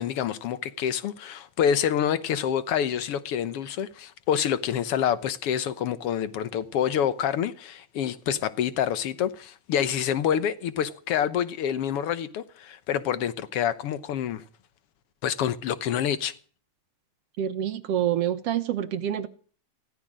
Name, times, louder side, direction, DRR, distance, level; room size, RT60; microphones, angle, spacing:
voice 1, 0.0-14.4 15.2-16.3, left 9 dB, 60° left, 1.7 m, -27 dB
voice 2, 17.4-19.3, right 10 dB, 65° right, 1.8 m, -27 dB
16.5 x 14.0 x 6.3 m
omnidirectional pair, 3.3 m